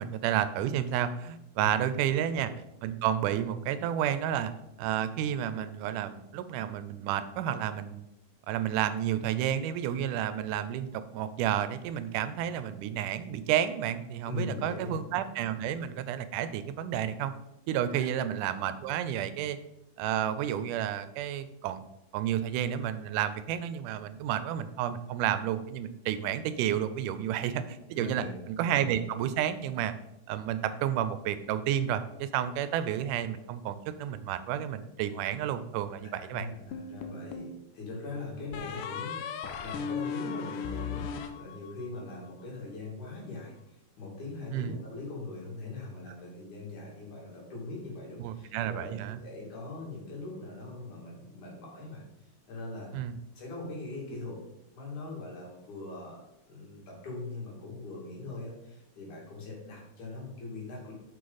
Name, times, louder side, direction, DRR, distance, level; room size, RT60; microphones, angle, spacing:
voice 1, 0.0-2.5 2.8-4.5 4.8-8.0 8.5-17.3 17.7-19.6 20.0-21.8 22.1-28.2 28.6-29.9 30.3-36.5 44.5-44.7 48.2-49.2 52.9-53.1, right 10 dB, 85° right, 12 dB, 2.1 m, -31 dB
voice 2, 14.2-15.0 17.9-18.1 27.9-28.3 36.0-52.0 52.5-52.9 53.4-54.4 54.7-56.2 56.5-60.9, left 2 dB, 70° left, -3 dB, 3.8 m, -41 dB
sound 1, 36.7-37.6 38.5-42.0, left 6 dB, 90° left, 2.2 m, -37 dB
7.6 x 6.3 x 4.0 m, 0.85 s
omnidirectional pair, 3.6 m